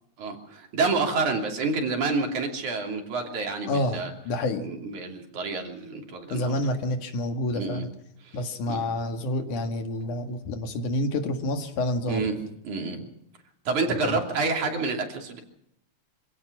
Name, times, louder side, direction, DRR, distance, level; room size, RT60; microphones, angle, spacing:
voice 1, 0.2-4.1 4.6-6.6 7.5-7.9 8.2-8.4 8.7-8.8 12.1-13.1 13.7-15.4, right 4 dB, 80° right, 3 dB, 4.4 m, -28 dB
voice 2, 3.7-4.7 6.3-7.9 8.3-12.3 13.9-14.2, left 1 dB, 85° left, 6 dB, 3.4 m, -28 dB
25.5 x 16.5 x 6.1 m, 0.76 s
omnidirectional pair, 3.4 m